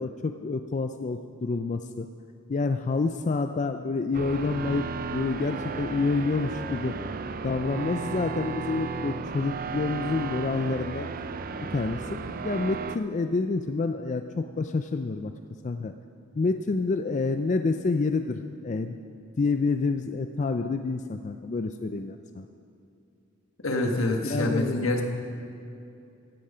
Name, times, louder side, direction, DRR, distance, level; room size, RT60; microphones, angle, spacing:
voice 1, 0.0-2.1 2.5-4.9 5.1-6.9 7.4-11.1 11.7-12.2 12.4-15.3 15.6-15.9 16.3-19.0 19.4-22.5 24.3-25.0, left 3 dB, 35° left, 7 dB, 0.4 m, -28 dB
sound 1, 4.1-13.0, right 5 dB, 45° right, 0.5 m, -34 dB
voice 2, 23.6-25.0, left 2 dB, 80° left, 2 dB, 1.5 m, -26 dB
15.5 x 8.7 x 5.6 m, 2.6 s
head